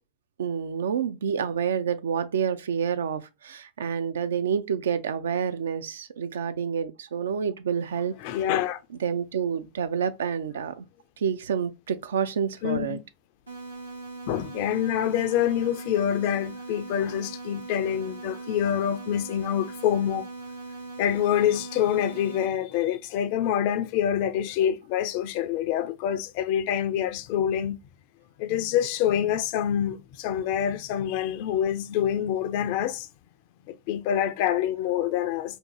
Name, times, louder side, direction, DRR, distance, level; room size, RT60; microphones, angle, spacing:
voice 1, 0.4-8.1 9.0-10.9 11.2-13.0, right 7 dB, 65° right, 0.3 m, -28 dB
voice 2, 8.2-8.8 12.6-13.0 14.3-20.3 21.0-27.8 28.4-33.1 33.7-35.6, left 10 dB, 45° left, 0.3 m, -26 dB
sound 1, 13.5-22.5, right 3 dB, 80° right, 0.8 m, -40 dB
2.6 x 2.5 x 3.6 m
figure-of-eight pair, 90°, 0 cm